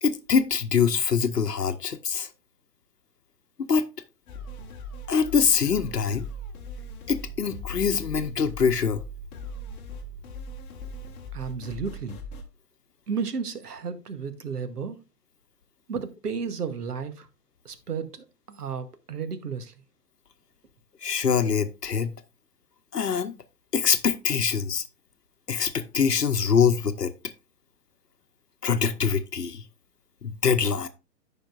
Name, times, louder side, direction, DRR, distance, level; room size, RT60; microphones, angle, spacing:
voice 1, 0.0-2.3 3.7-3.8 5.1-6.3 7.1-9.0 21.0-22.1 22.9-23.3 23.7-24.8 25.5-27.1 28.6-29.6 30.2-30.9, left 6 dB, 75° left, 0.9 m, -24 dB
sound 1, 4.3-12.4, left 1 dB, 15° left, 1.1 m, -39 dB
voice 2, 11.3-12.2 13.1-15.0 15.9-17.3 17.6-19.7, right 6 dB, 70° right, 1.2 m, -33 dB
14.0 x 5.1 x 2.4 m
figure-of-eight pair, 125°, 48 cm